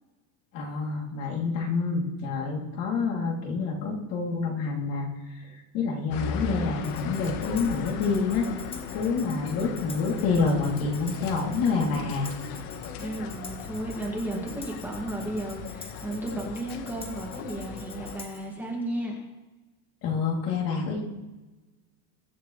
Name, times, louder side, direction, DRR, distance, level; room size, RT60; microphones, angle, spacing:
voice 1, 0.5-8.5 8.9-12.3 20.0-21.0, left 4 dB, 50° left, -1 dB, 3.1 m, -28 dB
sound 1, 6.1-18.2, left 5 dB, 80° left, 1.5 m, -38 dB
Tambourine, 6.8-18.5, left 4 dB, 15° left, 0.9 m, -46 dB
voice 2, 13.0-19.2, right 1 dB, 5° right, -3 dB, 2.1 m, -34 dB
22.5 x 9.9 x 3.3 m, 1.1 s
cardioid pair, 170°, 44 cm